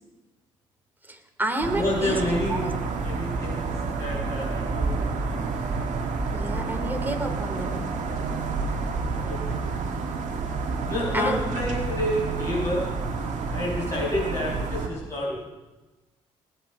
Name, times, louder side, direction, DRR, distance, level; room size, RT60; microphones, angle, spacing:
voice 1, 1.1-2.7 6.3-7.8 11.1-11.4 15.3-15.4, right 1 dB, 15° right, 5 dB, 3.1 m, -30 dB
sound 1, 1.6-14.9, right 4 dB, 60° right, 2.0 m, -29 dB
voice 2, 1.8-2.7 3.0-3.7 4.0-5.4 6.5-6.9 9.2-9.6 10.9-15.4, left 1 dB, 20° left, -6 dB, 6.3 m, -30 dB
19.5 x 9.1 x 5.5 m, 1.1 s
hypercardioid pair, 50°, 14 cm